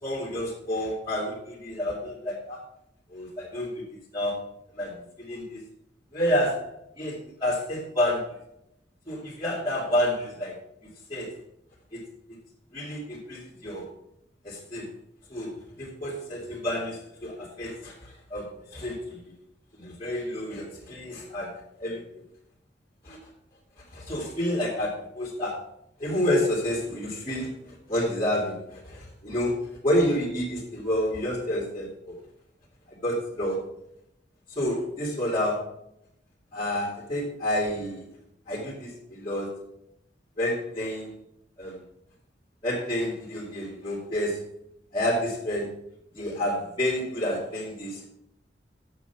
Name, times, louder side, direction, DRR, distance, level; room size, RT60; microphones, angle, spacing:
voice 1, 0.0-2.6 3.1-3.8 4.1-5.6 6.1-8.4 9.1-10.6 11.1-11.3 11.9-12.1 12.7-13.9 14.4-14.9 15.3-19.2 19.8-21.5 21.8-22.0 23.0-23.2 23.9-25.6 26.0-32.2 32.9-33.6 34.5-35.7 36.5-38.0 38.5-39.6 40.4-41.1 41.6-41.8 42.6-44.4 44.9-45.7 46.1-48.1, left 1 dB, 25° left, -8 dB, 2.3 m, -29 dB
8.0 x 6.7 x 5.8 m, 0.79 s
head